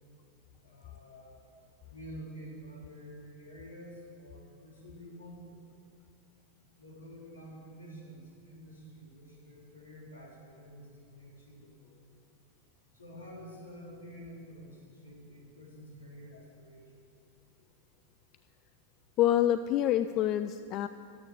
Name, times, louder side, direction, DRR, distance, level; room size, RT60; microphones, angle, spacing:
voice 1, 0.6-1.6 1.9-5.6 6.8-12.0 12.9-16.8, equal, 75° left, -5 dB, 4.1 m, -49 dB
voice 2, 19.2-20.9, left 12 dB, 35° left, 11 dB, 0.3 m, -26 dB
11.5 x 8.3 x 9.4 m, 2.5 s
figure-of-eight pair, 90°, 0 cm